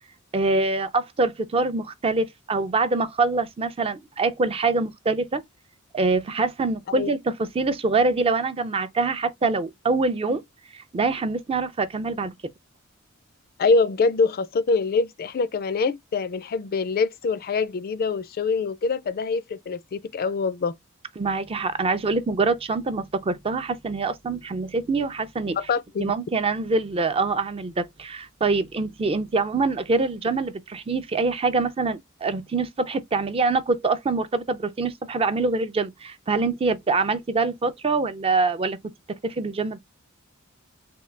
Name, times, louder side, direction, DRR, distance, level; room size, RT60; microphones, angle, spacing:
voice 1, 0.3-5.4 5.9-10.4 10.7-12.3 21.2-25.6 26.0-39.8, right 3 dB, 25° right, 0.4 m, -25 dB
voice 2, 13.6-20.7 25.7-26.1, left 4 dB, 45° left, 0.4 m, -24 dB
3.7 x 2.2 x 3.2 m
head